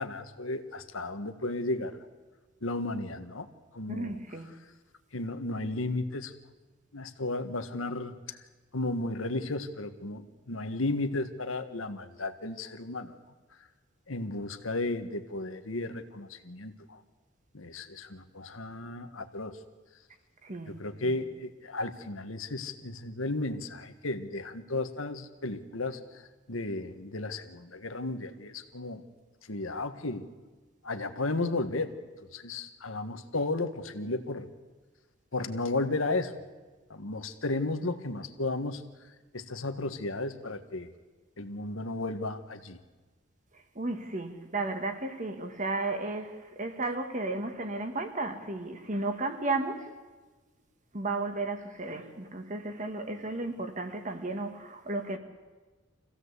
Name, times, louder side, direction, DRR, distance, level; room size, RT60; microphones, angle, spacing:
voice 1, 0.0-1.9 2.6-3.5 3.7-4.1 5.1-6.3 6.9-8.4 8.7-13.1 14.1-17.0 17.5-19.6 20.8-26.0 26.5-29.0 29.5-30.3 30.8-31.9 32.3-34.5 35.3-36.3 36.9-38.8 39.3-40.9 41.4-42.8, left 2 dB, 90° left, 1.6 m, -34 dB
voice 2, 3.9-4.5 20.4-21.2 43.8-49.9 50.9-55.2, right 2 dB, 40° right, 1.9 m, -34 dB
25.5 x 16.0 x 8.3 m
head